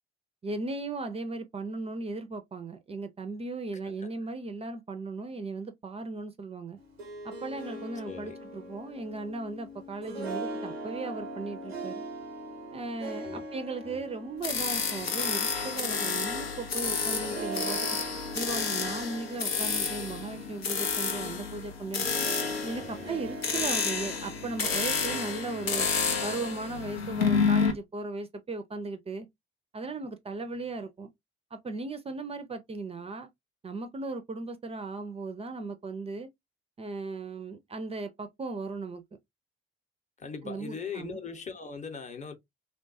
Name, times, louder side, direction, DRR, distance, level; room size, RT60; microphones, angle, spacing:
voice 1, 0.4-6.8 7.2-12.0 12.7-17.8 18.3-22.1 22.6-25.9 26.2-29.3 29.7-31.1 31.5-33.3 33.6-36.3 36.8-39.0 40.4-41.2, right 3 dB, 20° right, 0.4 m, -37 dB
Harp, 6.8-26.6, right 1 dB, 90° right, 0.5 m, -41 dB
voice 2, 8.0-8.4 13.2-14.0 22.8-23.2 40.2-42.4, left 5 dB, 25° left, 0.7 m, -41 dB
sound 1, 14.4-27.7, left 5 dB, 85° left, 0.5 m, -30 dB
3.0 x 2.2 x 2.5 m
figure-of-eight pair, 45°, 30 cm